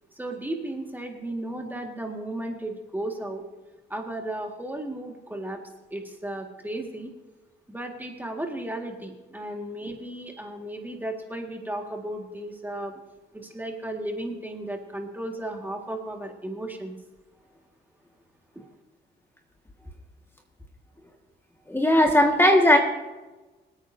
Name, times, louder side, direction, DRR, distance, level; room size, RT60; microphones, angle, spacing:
voice 1, 0.2-3.5 3.9-5.6 5.9-7.1 7.7-13.0 13.3-17.0, right 1 dB, 10° right, 2 dB, 1.9 m, -34 dB
voice 2, 21.7-22.8, left 1 dB, 10° left, 2 dB, 1.8 m, -17 dB
26.0 x 9.0 x 2.8 m, 1.2 s
cardioid pair, 90°, 20 cm